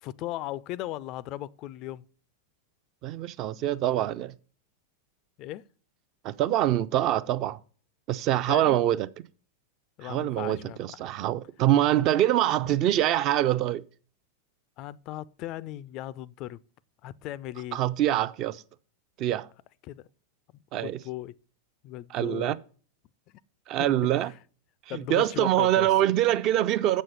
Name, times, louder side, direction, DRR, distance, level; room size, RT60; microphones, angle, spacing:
voice 1, 0.0-2.1 5.4-5.6 8.5-8.8 10.0-10.8 14.8-16.6 17.0-17.8 19.8-20.1 20.5-21.3 21.8-22.6 23.8-23.9 24.9-25.9, left 14 dB, 40° left, 0.3 m, -37 dB
voice 2, 3.0-4.3 6.2-7.6 8.1-9.1 10.0-13.8 17.7-18.6 19.2-19.5 20.7-21.0 22.1-22.5 23.7-24.3 24.9-27.0, right 13 dB, 40° right, 0.4 m, -24 dB
7.6 x 6.3 x 5.5 m
figure-of-eight pair, 90°, 0 cm